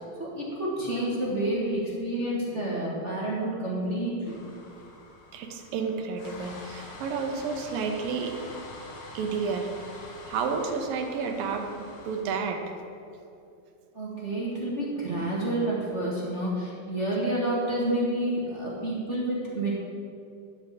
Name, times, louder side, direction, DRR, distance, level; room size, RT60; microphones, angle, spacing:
voice 1, 0.2-4.3 13.9-19.7, right 1 dB, 35° right, -6 dB, 1.2 m, -29 dB
sound 1, 4.2-12.2, left 2 dB, 55° left, 1.2 m, -45 dB
voice 2, 5.3-8.3 9.1-12.6, right 5 dB, 90° right, 3 dB, 2.7 m, -31 dB
12.0 x 5.1 x 8.4 m, 2.6 s
omnidirectional pair, 3.9 m